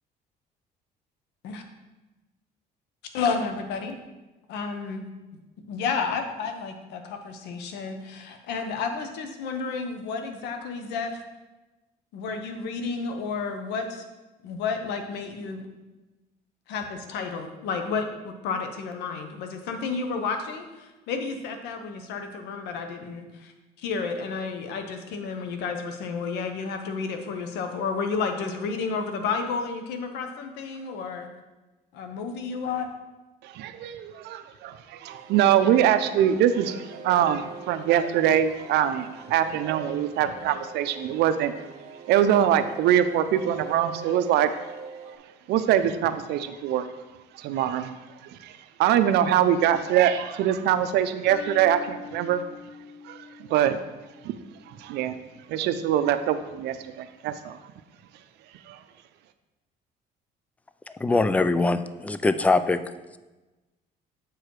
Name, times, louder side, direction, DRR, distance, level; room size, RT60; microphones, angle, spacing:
voice 1, 3.1-4.0 4.5-5.0 5.7-11.2 12.1-14.0 14.4-15.7 16.7-23.5 23.8-31.3 31.9-32.9, left 5 dB, 85° left, 6 dB, 1.0 m, -31 dB
voice 2, 33.4-41.5 42.1-44.7 45.5-46.9 47.3-47.9 48.2-48.5 48.8-52.4 53.0-53.8 54.2-54.3 54.7-55.2 55.5-57.6 58.7-58.8, right 10 dB, 80° right, 11 dB, 0.6 m, -23 dB
sound 1, 35.0-45.2, right 5 dB, 40° right, 1.5 m, -43 dB
sound 2, 51.3-55.3, left 5 dB, 45° left, 1.4 m, -44 dB
voice 3, 61.0-62.8, left 3 dB, 10° left, 13 dB, 0.3 m, -22 dB
7.6 x 4.8 x 4.7 m, 1.1 s
cardioid pair, 110°, 17 cm